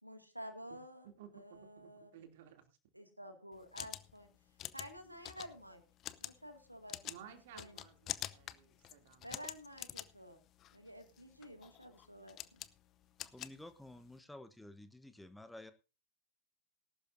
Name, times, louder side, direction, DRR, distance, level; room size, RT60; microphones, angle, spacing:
voice 1, 0.0-1.1 1.3-2.1 2.9-4.3 4.7-5.8 6.2-7.0 7.5-7.8 9.2-10.4 10.7-12.6, equal, 90° right, 6 dB, 2.1 m, -51 dB
voice 2, 1.2-2.8 7.0-9.4, right 9 dB, 55° right, 6 dB, 2.8 m, -57 dB
sound 1, 3.5-14.2, left 12 dB, 35° left, 0.8 m, -48 dB
voice 3, 13.2-15.7, left 1 dB, 5° left, 11 dB, 1.1 m, -52 dB
19.5 x 12.0 x 2.7 m, 0.31 s
figure-of-eight pair, 90°, 0 cm